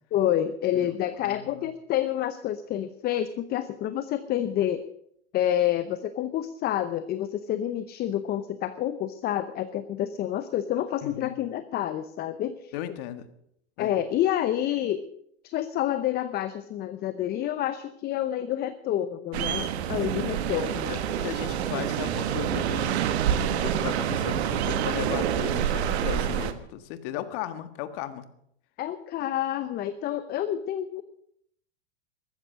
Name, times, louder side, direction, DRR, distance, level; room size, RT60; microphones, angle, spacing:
voice 1, 0.1-4.8 5.3-12.7 13.8-15.0 15.4-20.9 28.8-31.0, left 11 dB, 30° left, 12 dB, 0.8 m, -28 dB
voice 2, 1.2-1.6 11.0-11.4 12.7-13.3 13.8-13.9 20.1-20.4 20.9-23.0 23.5-28.3, left 12 dB, 50° left, 10 dB, 1.7 m, -36 dB
sound 1, 19.3-26.5, right 9 dB, 65° right, 1.6 m, -27 dB
14.5 x 14.0 x 6.4 m, 0.71 s
hypercardioid pair, 130°, 34 cm